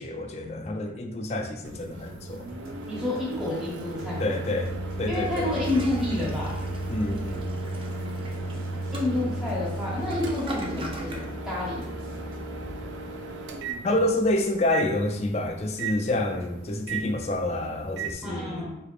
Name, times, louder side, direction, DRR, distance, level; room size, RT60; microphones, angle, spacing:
voice 1, 0.0-2.5 4.2-5.5 6.9-7.5 13.8-18.7, left 1 dB, 35° left, 4 dB, 0.4 m, -28 dB
Microwave oven, 1.6-18.1, right 2 dB, 85° right, 0.4 m, -35 dB
sound 1, 2.0-12.7, equal, 50° right, 0.9 m, -43 dB
voice 2, 2.8-4.3 5.1-6.6 8.9-11.9 18.2-18.8, left 2 dB, 5° right, -7 dB, 1.0 m, -29 dB
Toilet flush, 5.1-11.3, right 1 dB, 30° right, 0.4 m, -40 dB
3.9 x 3.3 x 2.4 m, 0.83 s
head